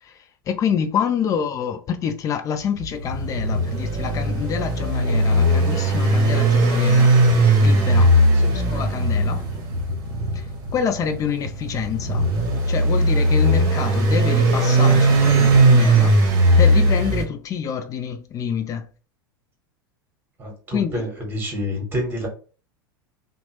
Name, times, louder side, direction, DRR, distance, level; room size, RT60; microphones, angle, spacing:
voice 1, 0.0-7.2 7.6-8.1 8.5-9.5 10.3-10.5 10.7-12.3 12.7-16.2 16.6-18.9 20.7-21.0, left 7 dB, 25° left, 0.4 m, -27 dB
sound 1, 2.8-17.2, right 1 dB, 40° right, 0.9 m, -18 dB
voice 2, 20.4-22.3, left 1 dB, 15° right, 1.3 m, -28 dB
2.9 x 2.1 x 3.0 m
figure-of-eight pair, 85°, 12 cm